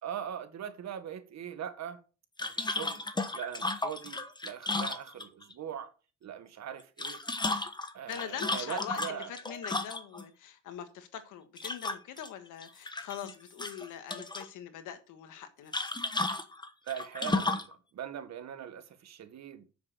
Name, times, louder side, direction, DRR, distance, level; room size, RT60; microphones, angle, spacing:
voice 1, 0.0-2.0 2.4-3.0 3.3-5.9 6.2-7.2 7.9-9.3 16.8-19.7, right 9 dB, 60° right, 1.5 m, -41 dB
sound 1, 2.4-5.5 6.8-10.2 11.6-12.3 12.6-13.3 13.6-14.5 15.7-17.7, left 2 dB, 15° left, 1.2 m, -34 dB
voice 2, 8.1-16.0, left 9 dB, 90° left, 1.5 m, -43 dB
7.2 x 6.8 x 6.6 m
cardioid pair, 90°, 30 cm